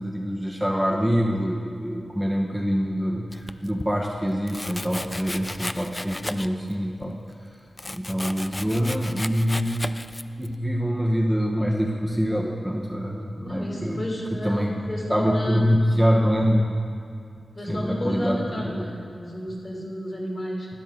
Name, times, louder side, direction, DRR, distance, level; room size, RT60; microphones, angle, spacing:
voice 1, 0.0-7.2 7.8-10.0 10.4-14.8 15.1-16.7 17.7-18.9, equal, 5° right, -1 dB, 1.1 m, -25 dB
Domestic sounds home sounds, 3.3-3.9 4.5-6.7 7.0-10.5, left 1 dB, 20° left, 0.4 m, -35 dB
voice 2, 13.4-15.6 17.5-20.7, equal, 40° left, -3 dB, 2.9 m, -32 dB
12.0 x 9.9 x 3.8 m, 2.5 s
cardioid pair, 55°, 0 cm